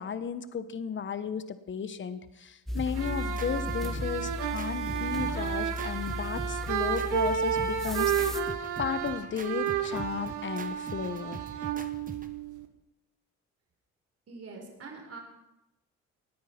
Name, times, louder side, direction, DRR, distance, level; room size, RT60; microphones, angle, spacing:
voice 1, 0.0-8.5 8.8-11.4, left 7 dB, 40° left, 13 dB, 1.0 m, -34 dB
sound 1, 2.7-8.4, left 2 dB, ahead, 1.8 m, -36 dB
sound 2, 2.8-12.4, right 4 dB, 30° right, 1.3 m, -44 dB
sound 3, 2.9-12.7, right 8 dB, 85° right, 1.5 m, -32 dB
voice 2, 14.3-15.2, right 4 dB, 50° right, 2 dB, 4.2 m, -44 dB
18.5 x 9.6 x 5.8 m, 0.94 s
cardioid pair, 90°, 30 cm